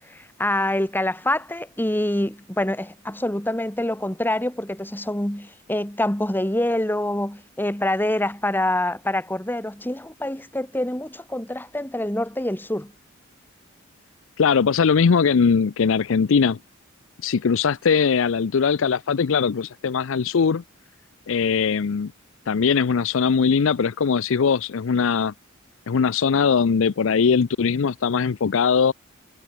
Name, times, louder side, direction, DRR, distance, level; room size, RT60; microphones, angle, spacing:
voice 1, 0.1-12.9, left 1 dB, 10° left, 2.3 m, -26 dB
voice 2, 14.4-16.6 17.2-20.6 21.3-22.1 22.5-25.3 25.9-28.9, left 6 dB, 65° left, 0.5 m, -20 dB
head